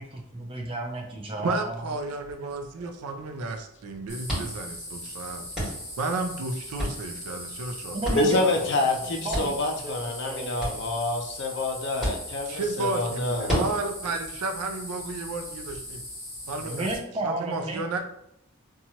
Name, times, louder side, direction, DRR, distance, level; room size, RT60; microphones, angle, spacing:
voice 1, 0.0-1.9 7.9-8.4 9.2-10.9 16.6-18.0, right 2 dB, 25° right, 1 dB, 0.5 m, -33 dB
voice 2, 1.4-8.2 8.5-8.7 9.0-9.1 9.4-9.5 12.5-16.0 16.5-16.9 17.2-18.0, right 3 dB, 85° right, 5 dB, 0.4 m, -32 dB
sound 1, 2.4-15.8, equal, ahead, 1.5 m, -36 dB
sound 2, 4.1-17.0, left 1 dB, 15° left, 1.0 m, -40 dB
voice 3, 8.1-13.6, left 2 dB, 50° left, 3 dB, 0.4 m, -27 dB
2.9 x 2.3 x 2.7 m, 0.77 s
head